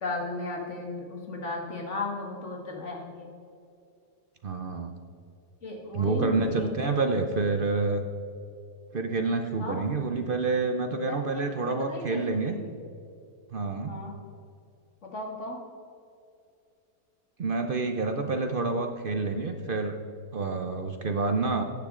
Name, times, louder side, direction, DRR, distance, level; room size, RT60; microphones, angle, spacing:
voice 1, 0.0-3.3 5.6-6.9 9.6-10.0 10.9-12.7 13.9-14.2 15.0-15.6, left 3 dB, 45° left, 0 dB, 2.1 m, -36 dB
voice 2, 4.4-4.9 5.9-8.0 8.9-12.5 13.5-14.0 17.4-20.0 20.3-21.6, right 3 dB, 60° right, 5 dB, 0.5 m, -28 dB
14.5 x 9.4 x 3.7 m, 2.5 s
omnidirectional pair, 1.8 m